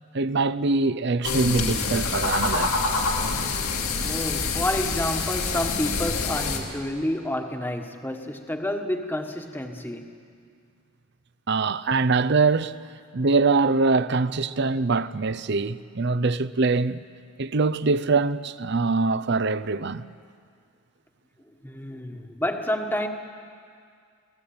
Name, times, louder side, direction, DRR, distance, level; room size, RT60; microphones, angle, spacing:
voice 1, 0.1-2.8 11.5-12.8 13.1-17.0 17.4-20.0, right 3 dB, 50° right, 0.6 m, -23 dB
sound 1, 1.2-6.6, left 4 dB, 75° left, 2.7 m, -26 dB
voice 2, 4.0-10.1 21.5-23.1, left 1 dB, 10° left, 1.3 m, -29 dB
27.0 x 17.5 x 8.7 m
head